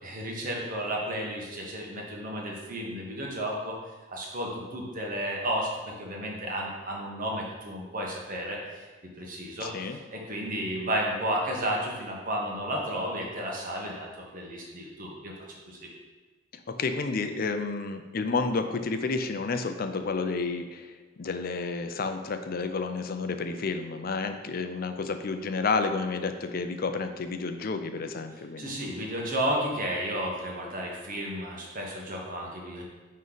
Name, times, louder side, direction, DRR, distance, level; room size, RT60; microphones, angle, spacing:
voice 1, 0.0-3.7 4.1-8.8 9.2-15.9 28.6-32.8, right 1 dB, 45° right, -2 dB, 1.2 m, -33 dB
voice 2, 9.6-10.0 16.7-28.7, left 4 dB, 50° left, 7 dB, 0.5 m, -30 dB
9.3 x 3.2 x 4.0 m, 1.3 s
head